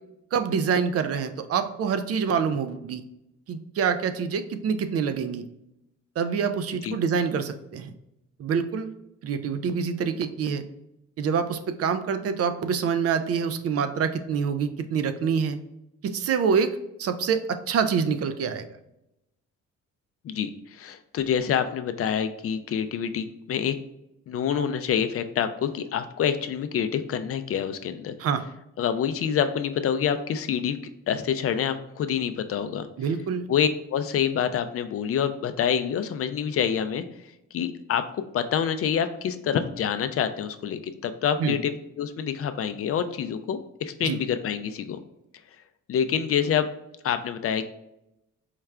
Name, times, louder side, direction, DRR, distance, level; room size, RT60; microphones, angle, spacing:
voice 1, 0.3-3.0 3.5-5.4 6.2-7.9 8.4-8.9 9.2-10.6 11.2-15.6 16.0-18.6 28.2-28.4 33.0-33.4 41.4-41.6 44.0-44.2, right 6 dB, 55° right, 9 dB, 0.4 m, -26 dB
voice 2, 20.2-23.8 24.3-28.1 28.8-30.8 31.1-32.9 33.5-37.0 37.5-38.0 38.3-45.0 45.9-46.7 47.0-47.7, left 8 dB, 50° left, 10 dB, 0.4 m, -27 dB
4.7 x 2.3 x 3.2 m, 0.85 s
cardioid pair, 90°, 30 cm